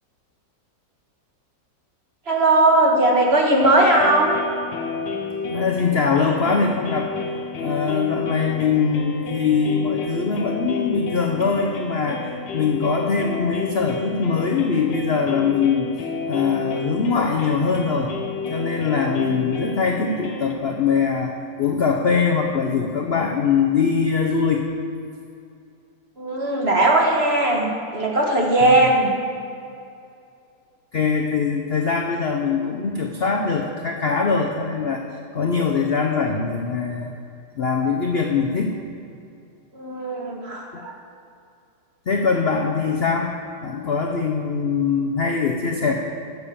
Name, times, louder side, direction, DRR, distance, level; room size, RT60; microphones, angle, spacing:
voice 1, 2.3-4.3 26.2-29.1 39.7-40.9, right 2 dB, 40° right, -1 dB, 1.5 m, -18 dB
sound 1, 3.5-20.5, left 4 dB, 80° left, 1.7 m, -31 dB
voice 2, 5.5-7.1 7.6-12.3 12.5-15.9 16.3-18.1 18.5-21.3 21.6-24.6 28.6-28.9 30.9-35.0 35.3-37.1 37.6-38.7 42.1-43.3 43.6-45.9, left 5 dB, 55° left, 2 dB, 0.7 m, -22 dB
10.5 x 7.2 x 7.0 m, 2.5 s
omnidirectional pair, 1.9 m